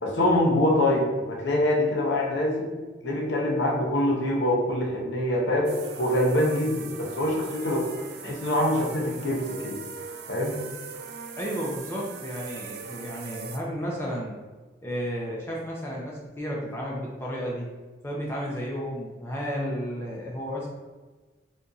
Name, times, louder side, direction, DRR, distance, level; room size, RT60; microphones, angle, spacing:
voice 1, 0.0-2.7 3.0-7.9 8.2-9.8 10.3-10.6, left 1 dB, 70° left, -1 dB, 0.7 m, -24 dB
sound 1, 5.6-13.6, right 5 dB, 60° right, 0.3 m, -40 dB
voice 2, 11.4-14.4 14.8-17.7 18.0-20.7, equal, 15° left, -4 dB, 0.4 m, -32 dB
4.0 x 2.6 x 2.3 m, 1.3 s
head